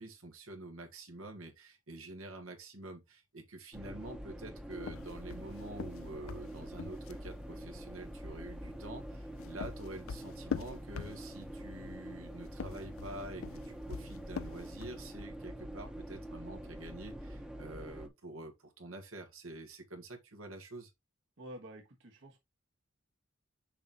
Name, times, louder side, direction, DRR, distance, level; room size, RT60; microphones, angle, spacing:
voice 1, 0.0-20.9, right 2 dB, 90° right, 1.7 m, -47 dB
sound 1, 3.7-18.1, right 1 dB, 5° right, 0.8 m, -45 dB
sound 2, 4.8-7.4 9.1-11.6 12.5-15.1, left 5 dB, 85° left, 0.5 m, -42 dB
voice 2, 21.4-22.4, right 1 dB, 65° right, 1.4 m, -49 dB
6.8 x 5.4 x 3.0 m
head